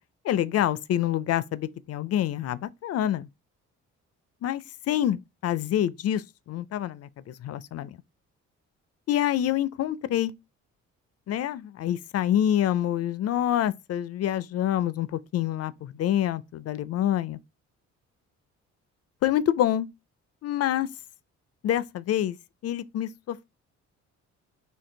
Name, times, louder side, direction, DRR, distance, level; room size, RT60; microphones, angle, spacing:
voice 1, 0.2-3.3 4.4-8.0 9.1-10.3 11.3-17.4 19.2-19.9 20.4-20.9 21.6-22.4 22.6-23.4, left 11 dB, 55° left, 0.5 m, -27 dB
4.4 x 2.8 x 3.8 m
cardioid pair, 90°, 30 cm